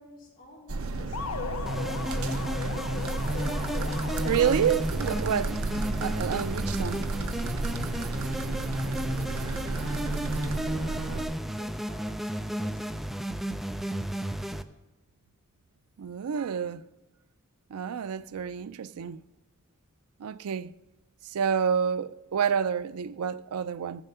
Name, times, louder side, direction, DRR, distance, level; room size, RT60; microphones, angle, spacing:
voice 1, 0.0-2.9 8.2-13.1 21.8-22.0, left 1 dB, 40° left, 3.3 m, -51 dB
sound 1, 0.7-11.2, right 3 dB, 75° right, 0.8 m, -33 dB
sound 2, 1.1-5.0, left 6 dB, 75° left, 0.5 m, -37 dB
sound 3, 1.7-14.6, equal, ahead, 0.3 m, -33 dB
voice 2, 4.2-5.6 6.0-7.1 16.0-16.9 17.7-19.2 20.2-20.7 21.2-24.0, right 7 dB, 90° right, 0.4 m, -29 dB
15.5 x 7.2 x 5.5 m
head